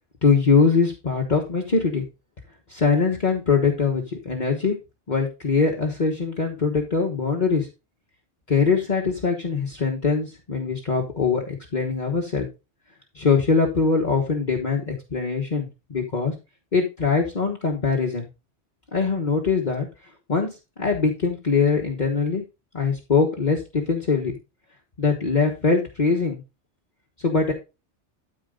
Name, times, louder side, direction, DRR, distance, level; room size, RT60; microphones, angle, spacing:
voice 1, 0.2-2.0 2.7-4.8 5.1-7.7 8.5-12.5 13.1-16.3 16.7-18.3 18.9-19.9 20.3-22.4 22.7-24.4 25.0-26.4 27.2-27.5, left 4 dB, 40° left, 0 dB, 1.4 m, -22 dB
12.5 x 4.5 x 3.8 m, 0.27 s
omnidirectional pair, 1.2 m